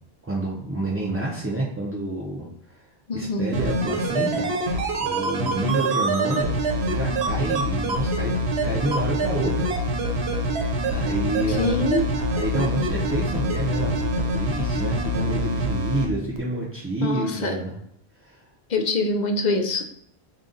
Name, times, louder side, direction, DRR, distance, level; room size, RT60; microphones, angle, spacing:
voice 1, 0.2-2.8 3.1-4.4 5.0-8.3 8.6-9.7 10.1-10.4 10.9-11.8 12.3-17.7 18.2-18.4, right 1 dB, 20° right, -4 dB, 0.4 m, -28 dB
voice 2, 3.1-3.6 11.5-12.1 17.0-17.6 18.7-19.8, left 2 dB, 55° left, 5 dB, 0.5 m, -24 dB
sound 1, 3.5-16.1 16.4-16.5, right 1 dB, 75° right, 0.9 m, -25 dB
3.8 x 2.3 x 3.7 m, 0.69 s
omnidirectional pair, 1.1 m